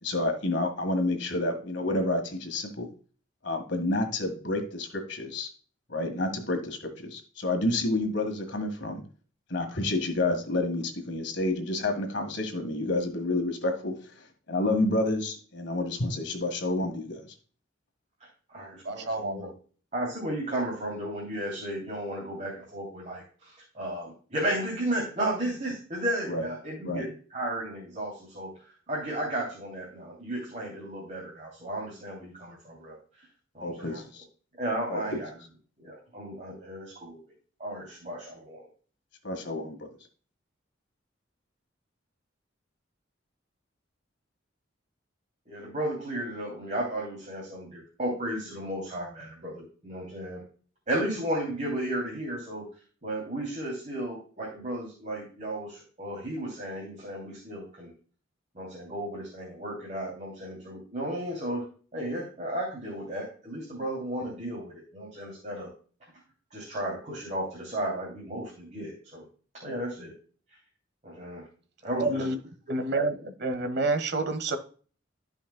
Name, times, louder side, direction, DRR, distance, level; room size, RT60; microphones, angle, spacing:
voice 1, 0.0-2.9 3.4-5.5 5.9-9.0 9.5-17.2 26.3-26.5 26.8-27.1 33.6-34.2 34.9-35.2 39.2-39.9, left 2 dB, 65° left, 5 dB, 1.7 m, -29 dB
voice 2, 18.2-19.5 19.9-33.3 33.5-34.0 34.6-35.3 35.8-37.2 37.6-38.7 45.5-50.4 50.9-52.7 53.0-57.9 58.5-61.6 61.9-65.7 66.5-69.2 69.5-70.1 70.5-70.6 71.0-71.5 71.8-72.3, right 1 dB, 35° right, -3 dB, 2.8 m, -34 dB
voice 3, 18.8-19.5 72.0-72.4 72.7-74.6, right 2 dB, 55° right, 8 dB, 1.3 m, -28 dB
13.5 x 5.3 x 2.2 m, 0.40 s
head